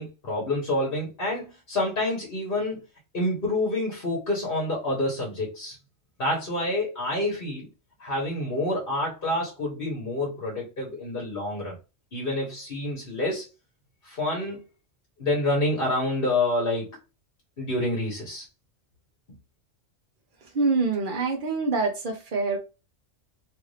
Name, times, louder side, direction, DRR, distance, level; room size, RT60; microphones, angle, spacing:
voice 1, 0.0-2.8 3.1-5.8 6.2-7.7 8.0-11.7 12.1-13.5 14.0-14.6 15.2-17.0 17.6-18.4, left 1 dB, 50° left, -2 dB, 1.2 m, -28 dB
voice 2, 20.5-22.6, right 3 dB, 45° right, 3 dB, 0.8 m, -25 dB
3.0 x 2.6 x 3.2 m, 0.29 s
omnidirectional pair, 1.3 m